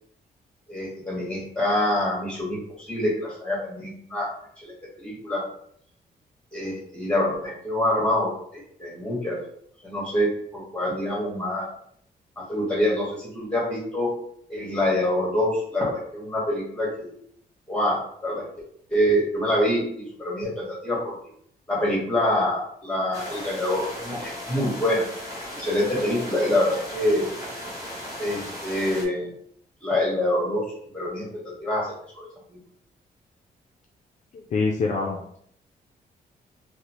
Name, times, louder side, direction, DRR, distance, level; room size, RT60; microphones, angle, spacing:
voice 1, 0.7-4.3 4.6-5.4 6.5-9.4 9.8-11.7 12.4-14.1 14.5-17.1 17.7-18.4 18.9-21.1 21.7-25.1 25.6-27.3 28.2-29.3 29.8-30.6 30.9-32.3, left 1 dB, 5° left, -4 dB, 1.2 m, -26 dB
sound 1, 23.1-29.1, equal, 20° right, 0.8 m, -36 dB
voice 2, 34.3-35.4, left 4 dB, 45° left, 0 dB, 0.4 m, -26 dB
2.9 x 2.0 x 2.9 m, 0.66 s
wide cardioid pair, 130°, 16 cm